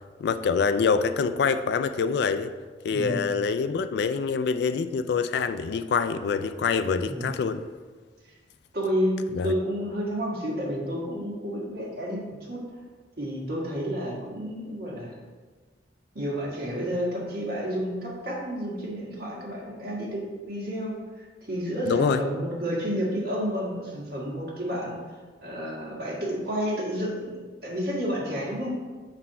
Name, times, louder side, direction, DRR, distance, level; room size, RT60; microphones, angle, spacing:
voice 1, 0.2-2.5 2.8-7.6 9.3-9.5 21.9-22.2, left 5 dB, 65° left, 11 dB, 0.3 m, -25 dB
voice 2, 7.0-7.4 8.7-9.2 9.4-12.6 13.2-15.1 16.1-25.0 25.4-28.8, equal, 60° right, -3 dB, 1.5 m, -30 dB
4.4 x 4.1 x 5.5 m, 1.4 s
head